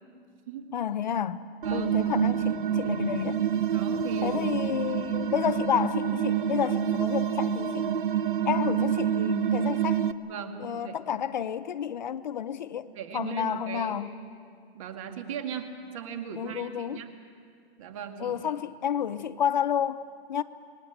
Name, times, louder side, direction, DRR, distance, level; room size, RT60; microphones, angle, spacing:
voice 1, 0.7-1.4 1.7-3.4 4.2-7.9 8.5-10.1 10.6-12.9 13.1-14.1 16.4-17.0 18.2-20.0 20.3-20.4, left 9 dB, 45° left, 0.6 m, -30 dB
sound 1, 1.6-10.1, right 9 dB, 55° right, 1.0 m, -27 dB
voice 2, 3.7-4.4 10.2-10.6 10.8-11.0 12.9-14.0 14.7-17.1 17.8-18.4, right 8 dB, 30° right, 1.9 m, -38 dB
27.0 x 21.0 x 7.8 m
hypercardioid pair, 170°, 31 cm